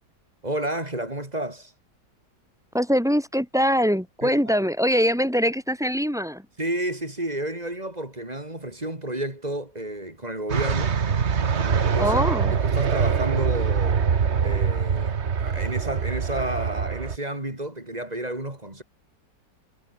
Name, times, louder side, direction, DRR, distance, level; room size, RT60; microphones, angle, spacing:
voice 1, 0.4-1.7 4.2-4.6 6.6-11.0 11.4-12.1 12.5-14.1 14.4-18.8, right 1 dB, 20° right, 4.3 m, -31 dB
voice 2, 2.7-6.5 12.0-12.5, equal, ahead, 3.6 m, -23 dB
sound 1, 10.5-17.2, right 6 dB, 40° right, 1.4 m, -24 dB
omnidirectional pair, 1.9 m